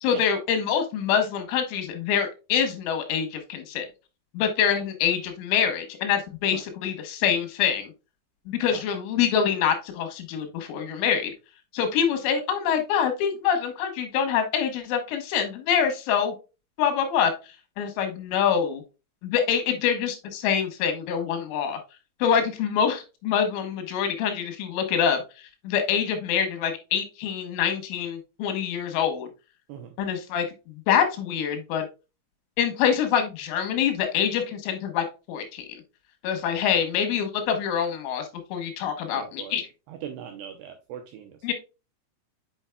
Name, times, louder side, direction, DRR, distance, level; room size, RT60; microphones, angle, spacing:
voice 1, 0.0-3.9 4.3-7.9 8.5-11.3 11.7-16.4 16.8-17.3 17.8-18.8 19.2-21.8 22.2-29.3 30.0-31.9 32.6-35.7 36.2-39.7 41.4-41.5, left 8 dB, 80° left, 6 dB, 3.7 m, -25 dB
voice 2, 39.1-39.6 39.9-41.5, right 9 dB, 85° right, 5 dB, 2.4 m, -40 dB
8.0 x 5.6 x 2.2 m, 0.29 s
omnidirectional pair, 5.6 m